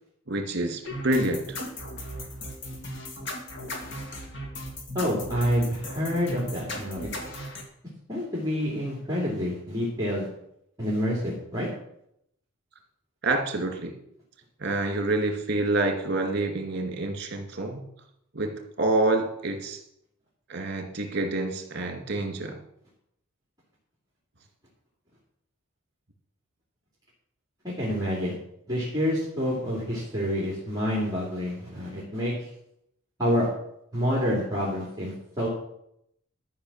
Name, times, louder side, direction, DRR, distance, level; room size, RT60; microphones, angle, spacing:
voice 1, 0.3-1.6 13.2-13.9 14.6-17.8 18.3-19.8 20.5-22.6, right 2 dB, 55° right, 4 dB, 2.3 m, -27 dB
sound 1, 0.8-7.6, left 1 dB, 60° left, 2.1 m, -36 dB
voice 2, 4.9-7.1 8.1-10.3 10.8-11.7 27.6-28.3 28.7-32.5 33.2-33.5 33.9-35.5, equal, 20° right, -5 dB, 2.9 m, -28 dB
13.0 x 5.6 x 7.3 m, 0.77 s
head